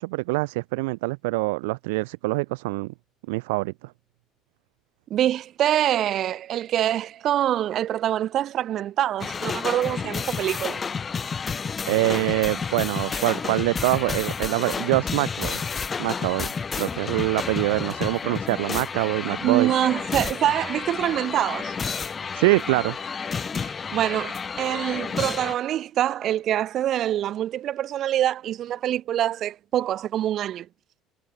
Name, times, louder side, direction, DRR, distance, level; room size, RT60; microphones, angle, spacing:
voice 1, 0.0-2.9 3.3-3.7 11.9-15.6 16.0-16.5 16.7-19.7 22.3-23.0, right 25 dB, 90° right, 1.0 m, -24 dB
voice 2, 5.1-10.8 13.1-13.2 19.3-21.7 23.6-30.7, right 12 dB, 55° right, 1.1 m, -25 dB
sound 1, 9.2-25.5, left 5 dB, 30° left, 1.1 m, -31 dB
supercardioid pair, 90°, 0 cm